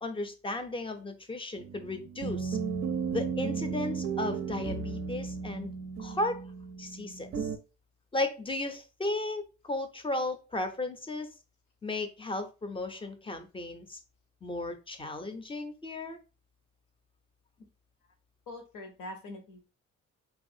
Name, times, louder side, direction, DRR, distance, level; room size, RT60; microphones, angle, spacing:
voice 1, 0.0-2.6 3.1-5.7 6.0-6.5 6.8-7.5 8.1-11.3 11.8-14.0 14.4-16.2, left 2 dB, 15° left, 0.5 m, -35 dB
sound 1, 1.6-7.6, right 6 dB, 45° right, 0.4 m, -34 dB
voice 2, 18.5-19.7, left 1 dB, 80° left, 0.8 m, -43 dB
3.2 x 2.4 x 2.6 m
cardioid pair, 90°, 30 cm